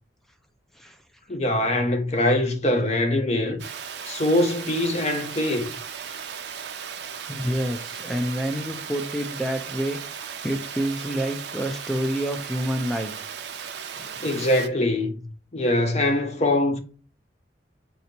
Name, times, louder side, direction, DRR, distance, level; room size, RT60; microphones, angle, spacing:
voice 1, 1.3-3.6 4.1-5.7 14.2-16.8, left 1 dB, 40° left, 0.7 m, -23 dB
Water, 3.6-14.7, right 7 dB, 65° right, 0.5 m, -36 dB
voice 2, 7.3-10.0 10.4-13.2 13.9-14.2, equal, ahead, 0.5 m, -28 dB
4.1 x 2.7 x 4.4 m
head